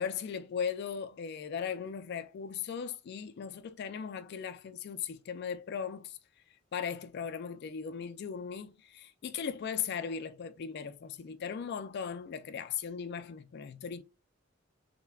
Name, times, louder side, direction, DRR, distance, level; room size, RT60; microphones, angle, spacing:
voice 1, 0.0-6.2 6.7-14.0, left 7 dB, 55° left, 0.3 m, -38 dB
5.5 x 2.1 x 2.3 m
head